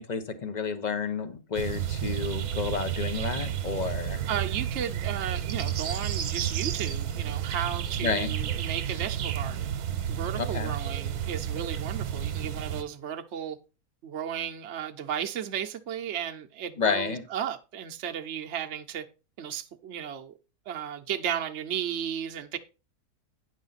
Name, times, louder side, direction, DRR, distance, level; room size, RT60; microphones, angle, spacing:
voice 1, 0.0-4.2 8.0-8.3 10.4-10.7 16.8-17.3, left 5 dB, 35° left, 0.9 m, -30 dB
sound 1, 1.5-12.8, right 9 dB, 75° right, 1.3 m, -31 dB
voice 2, 4.3-9.7 10.1-13.6 14.0-19.1 19.4-20.3 20.7-22.6, right 9 dB, 55° right, 0.9 m, -34 dB
9.7 x 6.4 x 4.0 m
omnidirectional pair, 1.6 m